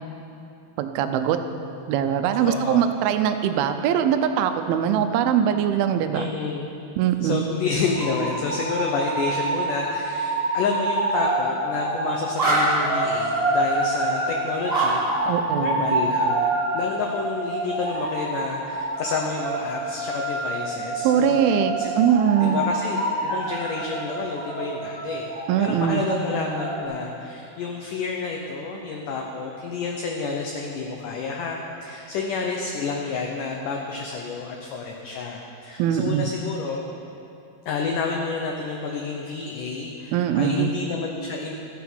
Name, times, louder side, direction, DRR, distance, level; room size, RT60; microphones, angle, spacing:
voice 1, 0.8-1.4 1.9-6.3 7.0-7.5 15.3-15.9 21.0-22.7 25.5-26.0 35.8-36.3 40.1-40.7, right 9 dB, 80° right, 8 dB, 2.4 m, -22 dB
voice 2, 2.4-2.9 6.1-6.7 7.2-15.0 15.6-16.4 16.7-21.4 21.8-21.9 22.4-25.3 25.6-36.8 37.7-41.5, left 4 dB, 75° left, 1 dB, 1.9 m, -29 dB
sound 1, 7.9-26.8, right 2 dB, 15° right, 2.2 m, -26 dB
13.5 x 9.5 x 6.1 m, 2.7 s
omnidirectional pair, 4.7 m